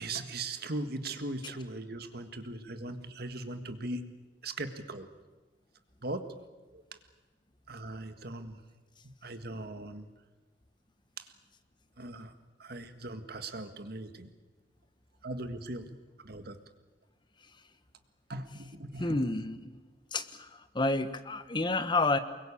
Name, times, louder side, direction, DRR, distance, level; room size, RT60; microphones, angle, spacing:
voice 1, 0.0-4.1 4.4-5.1 6.0-6.3 6.7-6.8 7.7-8.6 9.0-10.1 11.2-11.3 12.0-12.3 12.6-14.3 15.2-16.0 16.2-16.6 18.3-19.3, right 2 dB, 55° right, 8 dB, 1.7 m, -39 dB
voice 2, 19.0-19.8 20.1-20.5 20.7-22.2, left 2 dB, 25° left, 10 dB, 1.2 m, -29 dB
24.0 x 22.0 x 8.7 m, 1.2 s
head